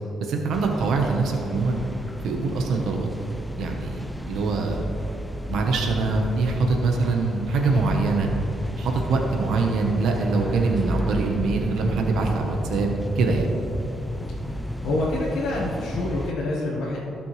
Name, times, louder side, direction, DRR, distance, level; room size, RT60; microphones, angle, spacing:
voice 1, 0.2-1.8 2.2-3.1 3.6-4.8 5.5-8.3 8.8-12.9 13.2-13.5, right 4 dB, 75° right, 2 dB, 1.0 m, -24 dB
sound 1, 0.5-16.3, equal, 5° left, 0.5 m, -32 dB
voice 2, 14.8-17.2, left 2 dB, 80° left, -6 dB, 1.4 m, -27 dB
16.0 x 6.0 x 3.2 m, 3.0 s
cardioid pair, 120°, 0 cm